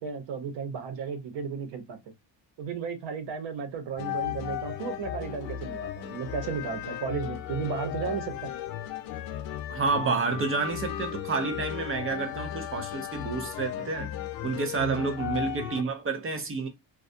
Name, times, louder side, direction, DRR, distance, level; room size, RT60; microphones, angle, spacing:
voice 1, 0.0-2.0 2.6-8.5 14.7-15.1, right 6 dB, 85° right, 0.8 m, -34 dB
sound 1, 4.0-15.8, left 12 dB, 85° left, 0.5 m, -35 dB
voice 2, 9.7-14.1 14.4-16.7, right 4 dB, 30° right, 0.5 m, -29 dB
2.3 x 2.2 x 2.6 m
cardioid pair, 135°, 43 cm